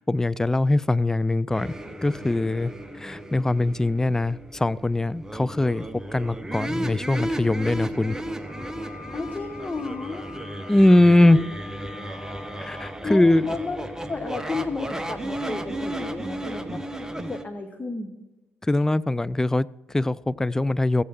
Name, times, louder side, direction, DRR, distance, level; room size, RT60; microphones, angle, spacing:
voice 1, 0.0-1.7 2.0-5.9 6.1-8.2 10.7-11.4 12.6-13.5 18.7-21.0, left 1 dB, 10° left, 18 dB, 0.3 m, -21 dB
sound 1, 1.5-17.4, right 1 dB, 10° right, 0.8 m, -34 dB
Wind instrument woodwind instrument, 8.5-13.0, left 5 dB, 55° left, 2.8 m, -45 dB
voice 2, 9.1-10.3 11.3-11.5 13.0-16.8 17.3-18.1, left 3 dB, 25° left, 5 dB, 1.1 m, -32 dB
15.0 x 8.3 x 4.4 m, 1.1 s
figure-of-eight pair, 45°, 6 cm